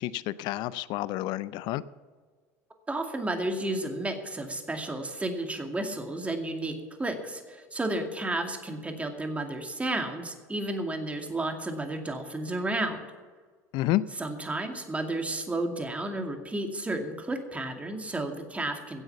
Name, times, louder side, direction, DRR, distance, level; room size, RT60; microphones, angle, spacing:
voice 1, 0.0-1.8 13.7-14.0, left 15 dB, 60° left, 18 dB, 0.5 m, -29 dB
voice 2, 2.9-6.7 7.0-13.0 14.2-19.0, right 2 dB, 15° right, 4 dB, 2.3 m, -32 dB
15.5 x 8.0 x 7.1 m, 1.5 s
hypercardioid pair, 85°, 8 cm